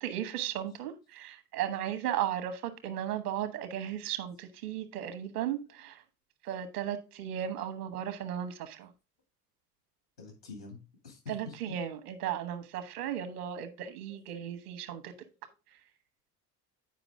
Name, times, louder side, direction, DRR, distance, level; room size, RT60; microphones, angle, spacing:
voice 1, 0.0-6.0 6.4-8.9 11.3-15.1, right 10 dB, 70° right, 1.2 m, -35 dB
voice 2, 10.2-11.8 14.4-14.5, left 4 dB, 90° left, 2.6 m, -47 dB
9.1 x 5.0 x 3.6 m
figure-of-eight pair, 60°, 48 cm